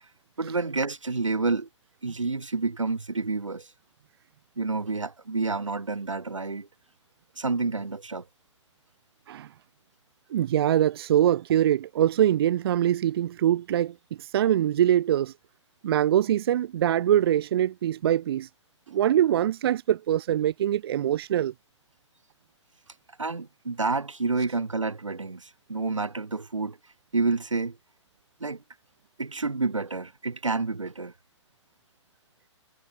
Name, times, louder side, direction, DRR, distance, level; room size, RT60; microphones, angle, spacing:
voice 1, 0.4-1.7 2.0-3.7 4.6-6.7 7.4-8.3 23.2-26.8 27.1-27.8 28.4-28.6 29.2-31.1, right 3 dB, 85° right, 0.8 m, -29 dB
voice 2, 10.3-15.3 15.8-18.5 18.9-21.5, right 11 dB, 55° right, 0.4 m, -23 dB
figure-of-eight pair, 115°, 16 cm